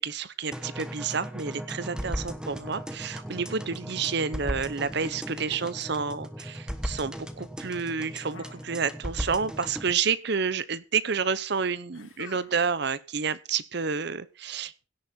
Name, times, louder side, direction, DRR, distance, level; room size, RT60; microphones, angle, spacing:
voice 1, 0.0-14.7, right 5 dB, 55° right, 17 dB, 0.7 m, -30 dB
sound 1, 0.5-9.9, equal, 5° right, 1.3 m, -37 dB
sound 2, 8.3-9.3 9.5-10.3 11.9-12.9, left 4 dB, 75° left, 2.3 m, -49 dB
17.0 x 10.5 x 4.3 m, 0.32 s
head